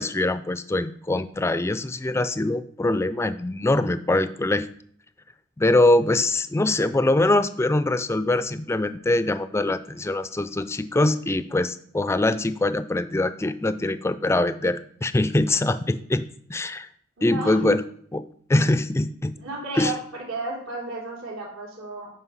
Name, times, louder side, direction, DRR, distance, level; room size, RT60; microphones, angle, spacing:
voice 1, 0.0-4.7 5.6-16.2 16.5-16.9 17.2-17.8 18.1-19.4 19.8-19.9, left 2 dB, 15° left, 13 dB, 0.3 m, -23 dB
voice 2, 17.2-17.7 19.4-22.1, right 3 dB, 85° right, -2 dB, 3.6 m, -33 dB
9.7 x 5.1 x 5.6 m, 0.62 s
head